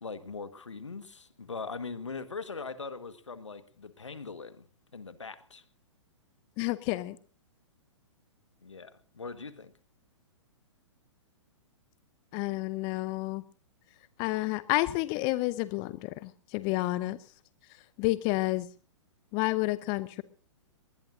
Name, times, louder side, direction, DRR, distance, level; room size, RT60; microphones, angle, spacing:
voice 1, 0.0-4.7 4.9-5.6 8.6-9.7, left 4 dB, 75° left, 1.7 m, -41 dB
voice 2, 6.6-7.2 12.3-13.4 14.2-17.2 17.7-18.7 19.3-20.2, left 20 dB, 30° left, 0.6 m, -30 dB
21.5 x 19.5 x 2.7 m
figure-of-eight pair, 115°, 16 cm